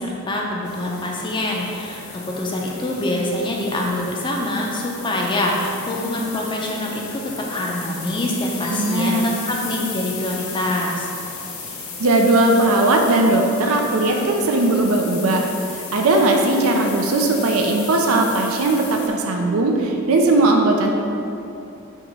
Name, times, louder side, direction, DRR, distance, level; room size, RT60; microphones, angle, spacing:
voice 1, 0.0-7.2 7.5-11.1, left 1 dB, 20° left, -1 dB, 0.5 m, -25 dB
sound 1, 0.6-19.1, left 5 dB, 75° left, 0.9 m, -35 dB
voice 2, 8.7-9.2 12.0-15.5 15.9-20.9, right 2 dB, 75° right, 2 dB, 0.5 m, -18 dB
5.8 x 3.0 x 5.4 m, 2.7 s
head